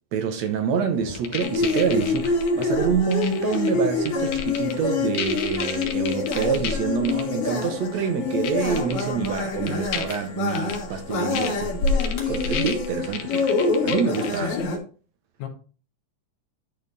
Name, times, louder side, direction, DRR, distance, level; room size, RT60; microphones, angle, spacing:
voice 1, 0.1-11.7 12.3-13.5 13.8-14.5, right 6 dB, 70° right, 2.1 m, -26 dB
sound 1, 0.9-9.3, right 1 dB, 20° right, 1.7 m, -43 dB
sound 2, 1.2-2.6 3.1-3.7 4.1-4.7 5.2-6.7 7.1-7.2 8.4-8.5 8.8-9.4 9.7-10.2 10.6-10.8 11.4-11.5 11.9-14.4, left 8 dB, 90° left, 2.4 m, -31 dB
sound 3, 1.4-14.8, left 3 dB, 55° left, 2.7 m, -26 dB
voice 2, 14.4-14.8 15.4-15.5, left 8 dB, 70° left, 2.4 m, -32 dB
11.0 x 4.2 x 4.0 m
omnidirectional pair, 3.4 m